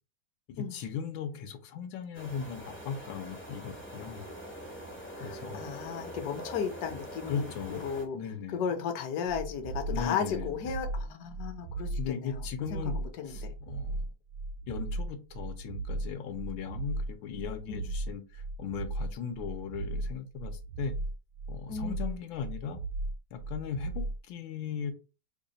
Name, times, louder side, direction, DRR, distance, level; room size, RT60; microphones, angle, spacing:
voice 1, 0.5-4.3 5.2-5.6 7.3-7.9 8.1-8.6 9.9-10.6 12.0-13.0 13.2-14.0 14.7-21.0 21.5-22.8 23.3-24.9, left 7 dB, 85° left, 1.4 m, -38 dB
sound 1, 2.1-8.1, equal, 20° left, 0.3 m, -44 dB
voice 2, 5.2-8.2 8.5-12.4 12.7-13.5 17.7-17.9 21.7-22.3, left 7 dB, 65° left, 1.1 m, -35 dB
sound 2, 9.3-24.2, right 2 dB, 70° right, 1.0 m, -36 dB
3.4 x 2.3 x 3.8 m
omnidirectional pair, 2.1 m